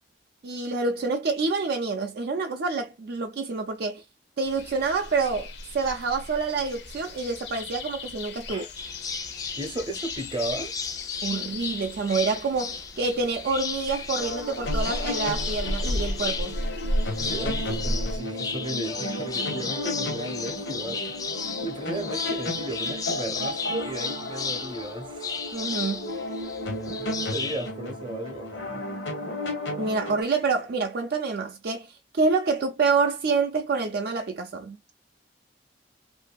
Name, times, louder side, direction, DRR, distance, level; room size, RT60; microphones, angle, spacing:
voice 1, 0.4-4.0 4.4-8.6 11.2-16.6 25.5-26.1 29.8-31.9 32.1-34.8, right 4 dB, 60° right, 0.4 m, -27 dB
sound 1, 4.4-18.2, left 1 dB, 65° left, 0.6 m, -34 dB
sound 2, 8.8-27.7, left 5 dB, 20° left, 0.4 m, -35 dB
voice 2, 9.6-10.7 17.2-25.3 27.0-28.8, right 1 dB, 25° right, 0.7 m, -35 dB
sound 3, 14.1-30.2, left 1 dB, 85° left, 0.9 m, -34 dB
2.7 x 2.6 x 2.2 m
head